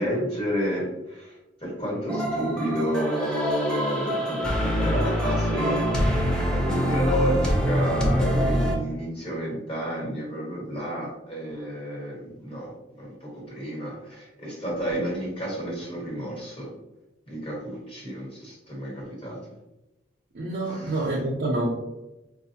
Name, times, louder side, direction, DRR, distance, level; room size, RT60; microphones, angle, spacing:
voice 1, 0.0-1.3 1.6-6.1 6.4-16.7 17.3-19.4 20.6-21.0, equal, 30° left, -4 dB, 1.4 m, -30 dB
sound 1, 2.1-8.7, equal, 5° left, 0.6 m, -25 dB
voice 2, 20.3-21.7, right 2 dB, 65° right, -4 dB, 0.6 m, -27 dB
4.6 x 2.4 x 2.7 m, 0.98 s
head